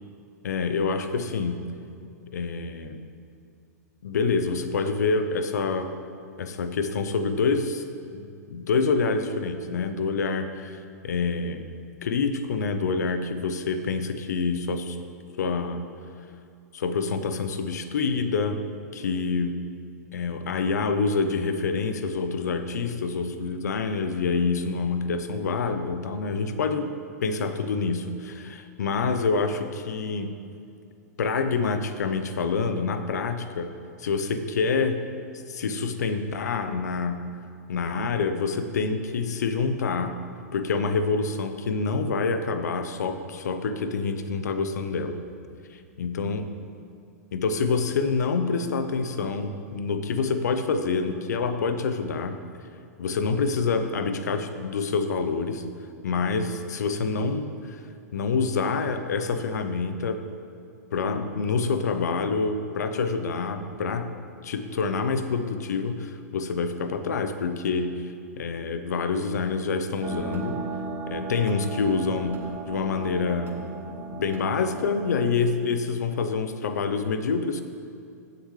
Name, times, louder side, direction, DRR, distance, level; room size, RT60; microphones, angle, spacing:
voice 1, 0.4-1.7 2.3-3.0 4.0-6.0 6.4-7.8 8.1-11.7 12.0-15.0 15.4-15.9 16.7-18.6 18.9-19.6 20.1-30.3 31.2-33.7 34.0-35.1 35.5-37.2 37.7-40.2 40.5-45.2 46.0-46.5 47.3-52.4 53.0-55.6 56.0-57.8 58.1-60.2 60.9-64.1 64.4-70.6 71.1-73.6 74.1-77.6, left 4 dB, 75° left, 9 dB, 0.8 m, -27 dB
sound 1, 70.0-75.3, right 3 dB, 25° right, 1.2 m, -35 dB
15.0 x 6.7 x 3.3 m, 2.4 s
hypercardioid pair, 110°, 9 cm